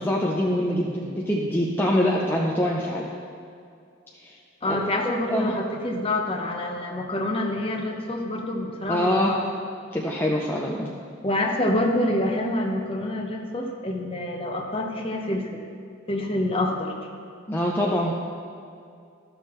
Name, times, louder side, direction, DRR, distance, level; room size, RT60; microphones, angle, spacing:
voice 1, 0.0-3.1 4.2-4.3 4.7-4.8 5.3-5.5 8.9-9.3 9.9-10.9 17.5-18.1, equal, 10° left, -3 dB, 0.5 m, -24 dB
voice 2, 4.6-9.4 11.2-15.6 16.1-16.9, left 1 dB, 30° left, 1 dB, 0.9 m, -27 dB
13.5 x 6.4 x 3.2 m, 2.4 s
head